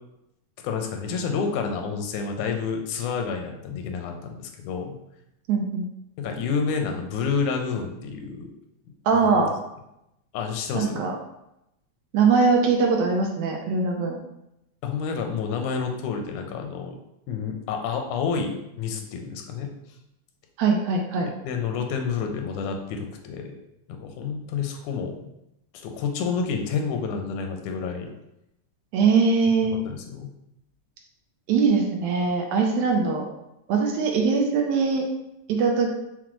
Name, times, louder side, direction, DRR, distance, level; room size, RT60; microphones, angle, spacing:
voice 1, 0.6-5.0 6.2-8.6 9.1-9.5 10.3-11.0 14.8-17.0 17.3-19.7 21.2-23.6 23.9-25.3 25.7-28.1 29.9-30.3, left 5 dB, 85° left, 4 dB, 2.0 m, -29 dB
voice 2, 5.5-5.9 9.1-9.5 10.7-11.1 12.1-14.2 20.6-21.3 28.9-29.7 31.5-33.3 33.7-35.1 35.5-35.9, right 4 dB, 80° right, 1 dB, 1.7 m, -21 dB
5.8 x 2.0 x 3.0 m, 0.85 s
omnidirectional pair, 3.4 m